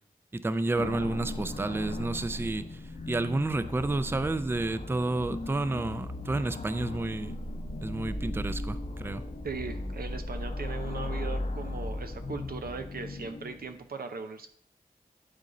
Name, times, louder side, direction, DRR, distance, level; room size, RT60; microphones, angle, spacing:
voice 1, 0.3-2.8 3.1-7.3 7.8-9.2, right 2 dB, 15° right, 13 dB, 0.4 m, -30 dB
sound 1, 0.7-13.8, left 2 dB, 60° left, 0.9 m, -37 dB
voice 2, 9.4-14.5, right 4 dB, 90° right, 7 dB, 0.7 m, -38 dB
11.5 x 4.0 x 3.8 m, 0.62 s
wide cardioid pair, 60°, 15 cm